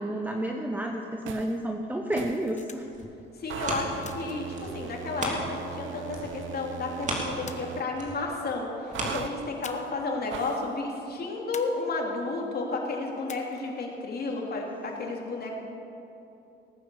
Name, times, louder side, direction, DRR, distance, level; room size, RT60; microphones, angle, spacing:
voice 1, 0.0-2.9, right 1 dB, 10° right, 3 dB, 1.0 m, -31 dB
sound 1, 1.2-1.6 2.1-2.5 3.5-7.9 8.9-9.3 10.3-10.7, right 8 dB, 75° right, 0.7 m, -39 dB
sound 2, 2.3-3.1 4.0-4.7 5.2-6.5 7.5-8.2 9.6-10.1 10.4-10.5 11.5-12.3 13.3-13.8, left 5 dB, 35° left, 1.1 m, -46 dB
sound 3, 2.8-5.8 6.1-9.9 10.4-10.5, right 1 dB, 40° right, 3.3 m, -36 dB
voice 2, 3.4-15.5, left 3 dB, 50° left, 0 dB, 3.1 m, -32 dB
18.0 x 9.4 x 7.1 m, 2.8 s
cardioid pair, 90°, 20 cm